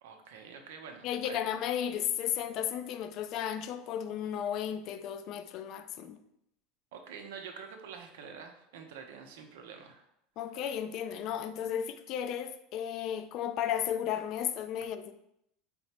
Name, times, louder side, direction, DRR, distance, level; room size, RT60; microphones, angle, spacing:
voice 1, 0.0-1.4 6.9-10.1, right 6 dB, 80° right, 0.6 m, -47 dB
voice 2, 1.0-6.2 10.4-15.1, left 9 dB, 50° left, 0.3 m, -34 dB
4.2 x 2.0 x 4.2 m
supercardioid pair, 115°, 0 cm